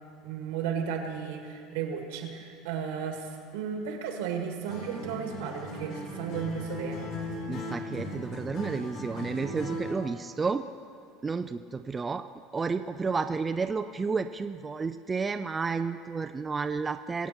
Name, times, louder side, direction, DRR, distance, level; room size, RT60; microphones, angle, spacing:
voice 1, 0.2-7.1, right 7 dB, 85° right, 3 dB, 2.1 m, -34 dB
Acoustic guitar, 4.7-10.1, left 1 dB, 60° left, 3.8 m, -38 dB
voice 2, 7.5-10.7 11.2-12.2 12.5-17.3, right 4 dB, 15° right, 8 dB, 0.4 m, -31 dB
23.0 x 8.2 x 4.4 m, 2.5 s
supercardioid pair, 140°, 0 cm